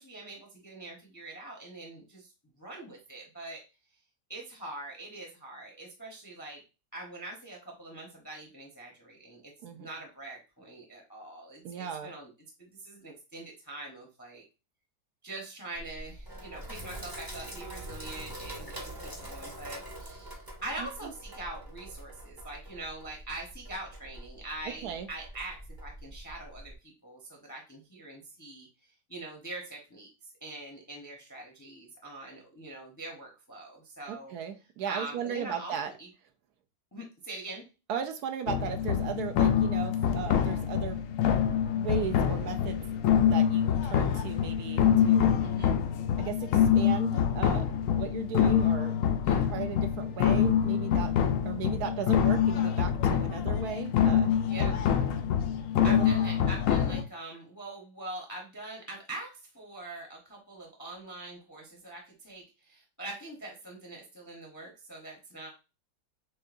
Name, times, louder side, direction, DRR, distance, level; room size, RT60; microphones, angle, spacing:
voice 1, 0.0-3.7 4.3-6.6 6.9-12.3 12.6-14.4 15.2-28.7 29.1-30.1 30.4-34.3 34.9-36.1 36.9-37.7 45.4-45.7 49.2-49.5 50.9-51.0 54.5-54.8 55.8-65.5, right 2 dB, 15° left, 0 dB, 0.6 m, -43 dB
voice 2, 11.6-12.1 20.8-20.9 24.8-25.1 34.1-35.9 37.9-41.0 41.7-42.8 43.3-45.3 46.2-47.7 48.0-48.9 49.5-51.1 51.4-54.8 55.8-56.1, right 8 dB, 75° right, 6 dB, 1.0 m, -36 dB
Sink (filling or washing), 15.8-26.8, right 1 dB, 20° right, 0.6 m, -44 dB
sound 1, 38.5-57.0, left 9 dB, 70° left, 0.8 m, -26 dB
6.4 x 2.3 x 2.5 m, 0.29 s
omnidirectional pair, 1.8 m